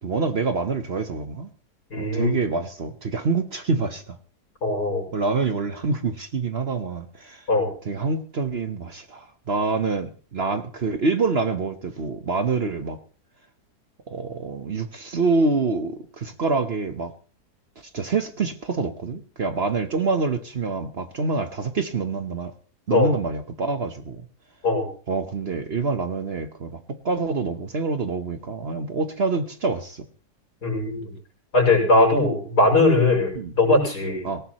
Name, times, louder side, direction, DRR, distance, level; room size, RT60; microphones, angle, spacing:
voice 1, 0.0-1.5 1.9-4.2 5.1-7.4 7.8-13.0 14.1-17.1 17.9-22.5 22.9-24.2 25.1-30.1 33.4-33.5 34.2-34.4, right 4 dB, 45° right, 8 dB, 1.2 m, -26 dB
voice 2, 1.9-2.3 4.6-5.0 7.5-7.7 22.9-23.1 24.6-24.9 30.6-31.1 31.5-34.2, left 2 dB, 80° left, -1 dB, 6.8 m, -20 dB
18.0 x 18.0 x 3.1 m, 0.40 s
omnidirectional pair, 1.7 m